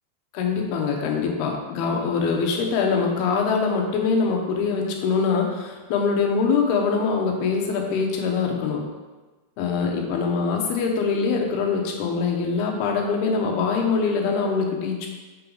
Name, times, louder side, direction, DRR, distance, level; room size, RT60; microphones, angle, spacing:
voice 1, 0.3-8.8 9.6-15.1, left 5 dB, 80° left, 1 dB, 2.9 m, -23 dB
7.4 x 5.8 x 3.9 m, 1.3 s
omnidirectional pair, 4.6 m